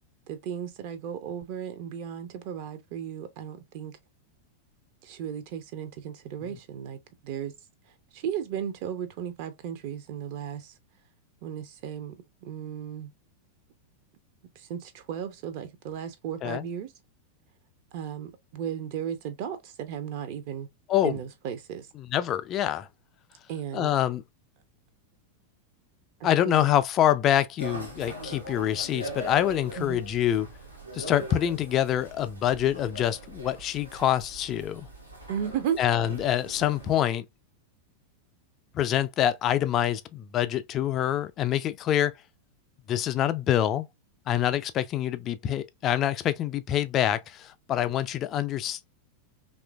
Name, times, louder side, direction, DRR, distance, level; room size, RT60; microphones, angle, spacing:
voice 1, 0.3-4.0 5.0-7.0 7.2-7.5 8.1-10.7 11.4-12.2 12.4-13.1 14.6-16.9 17.9-20.7 21.0-21.9 23.5-23.9 26.2-26.7 29.8-30.0 35.3-35.8, right 9 dB, 45° right, 0.5 m, -35 dB
voice 2, 22.0-22.9 23.7-24.2 26.2-30.5 30.9-34.9 35.8-37.3 38.7-42.1 42.9-43.9 44.3-48.9, left 11 dB, 30° left, 0.3 m, -26 dB
sound 1, 27.6-37.0, right 1 dB, 90° right, 0.8 m, -41 dB
3.0 x 2.4 x 2.3 m
figure-of-eight pair, 90°, 0 cm